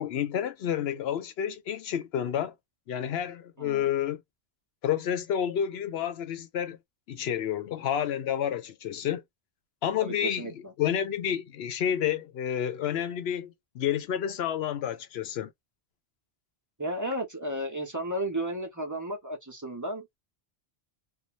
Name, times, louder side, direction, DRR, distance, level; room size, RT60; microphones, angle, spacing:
voice 1, 0.0-2.5 2.9-4.2 4.8-6.8 7.1-9.2 9.8-15.5, left 9 dB, 75° left, 0.8 m, -30 dB
voice 2, 3.6-3.9 10.0-10.7 16.8-20.2, right 1 dB, 20° right, 0.6 m, -33 dB
2.6 x 2.2 x 2.9 m
omnidirectional pair, 1.1 m